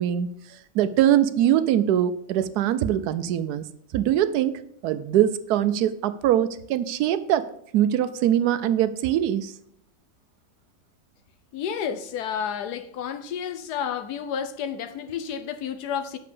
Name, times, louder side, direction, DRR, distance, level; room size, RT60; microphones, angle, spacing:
voice 1, 0.0-3.7 3.9-7.5 7.7-9.5, right 11 dB, 75° right, 1.1 m, -23 dB
voice 2, 11.5-16.2, left 8 dB, 75° left, 1.2 m, -31 dB
6.7 x 5.3 x 6.8 m
omnidirectional pair, 1.7 m